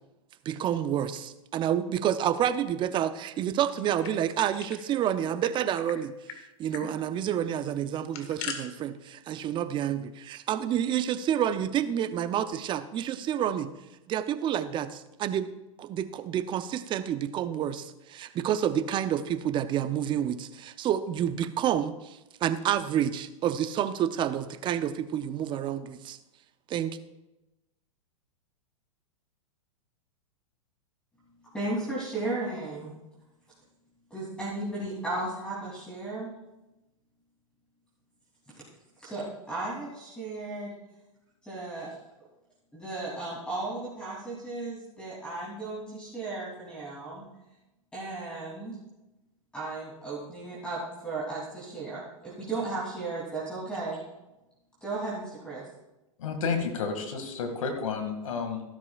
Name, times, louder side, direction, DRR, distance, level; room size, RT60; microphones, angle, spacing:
voice 1, 0.5-6.1 6.6-13.7 14.1-15.5 15.8-26.2 26.7-27.0, right 10 dB, 25° right, 13 dB, 0.6 m, -29 dB
sound 1, 3.7-4.8 5.1-5.2 5.4-6.0 6.3-6.4 6.7-6.9 7.9-8.6, left 7 dB, 50° left, 1.7 m, -40 dB
voice 2, 31.5-33.0 34.1-36.3 39.0-40.7 41.4-42.0 42.7-47.2 47.9-48.8 49.5-54.0 54.8-55.7, right 2 dB, 5° left, -7 dB, 3.1 m, -35 dB
voice 3, 56.2-58.6, left 5 dB, 75° left, 5 dB, 2.2 m, -31 dB
14.0 x 12.5 x 2.4 m, 0.99 s
hypercardioid pair, 115°, 18 cm